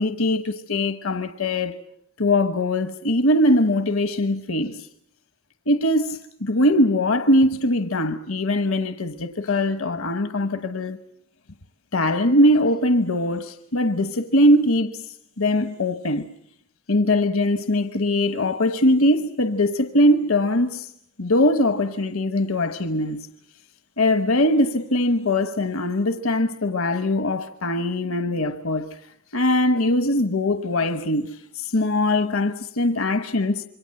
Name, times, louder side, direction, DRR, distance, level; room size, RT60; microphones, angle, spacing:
voice 1, 0.0-1.7 2.2-4.9 5.7-11.0 11.9-15.0 15.4-16.2 16.9-20.9 21.2-23.3 24.0-28.9 29.3-33.6, left 1 dB, 75° left, 1.1 m, -21 dB
27.0 x 23.5 x 7.7 m
head